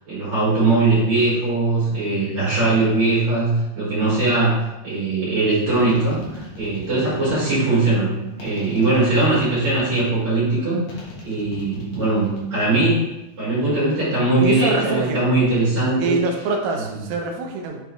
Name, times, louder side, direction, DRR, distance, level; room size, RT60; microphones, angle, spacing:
voice 1, 0.1-11.0 11.2-13.1 13.4-16.2 16.9-17.0, right 2 dB, 50° right, -10 dB, 3.4 m, -20 dB
sound 1, 5.8-7.6 8.4-10.2 10.9-12.6 12.9-13.4, left 2 dB, 60° left, 2.6 m, -39 dB
voice 2, 14.4-15.3 16.0-17.8, right 3 dB, 80° right, 2 dB, 2.6 m, -24 dB
7.9 x 4.5 x 3.3 m, 0.96 s
omnidirectional pair, 4.3 m